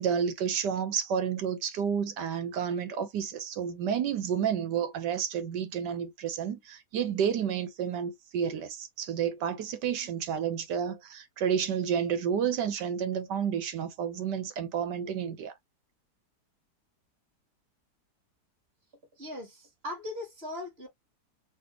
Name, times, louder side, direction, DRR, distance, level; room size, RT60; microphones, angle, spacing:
voice 1, 0.0-15.5, right 8 dB, 90° right, 1.5 m, -30 dB
voice 2, 19.2-20.9, left 1 dB, 35° right, 2.6 m, -39 dB
6.0 x 2.5 x 2.9 m
omnidirectional pair, 1.8 m